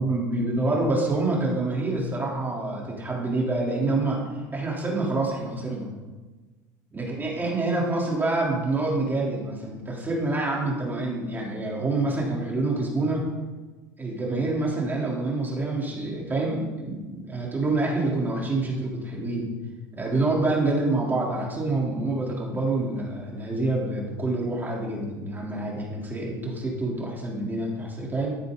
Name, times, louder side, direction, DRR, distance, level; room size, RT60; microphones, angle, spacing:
voice 1, 0.0-4.2 4.5-5.9 6.9-13.2 14.0-19.5 20.0-28.4, right 2 dB, 20° right, -3 dB, 3.6 m, -27 dB
13.0 x 9.4 x 4.0 m, 1.2 s
hypercardioid pair, 90°, 10 cm